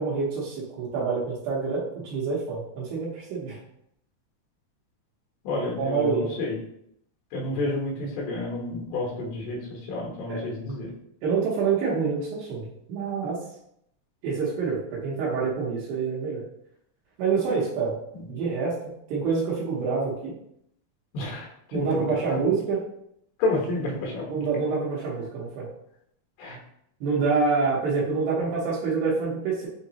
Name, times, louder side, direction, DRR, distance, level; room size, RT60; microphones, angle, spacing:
voice 1, 0.0-3.6 5.8-6.3 10.3-10.4 11.2-13.4 14.2-16.4 17.2-18.0 18.3-18.7 19.1-20.3 21.7-22.8 24.3-25.7 27.0-29.7, right 5 dB, 90° right, -6 dB, 2.8 m, -26 dB
voice 2, 5.4-6.5 7.3-9.6 9.9-10.9 21.1-21.8 23.4-24.4 26.4-26.6, left 2 dB, 75° left, -2 dB, 2.8 m, -30 dB
6.4 x 2.9 x 2.8 m, 0.74 s
omnidirectional pair, 4.1 m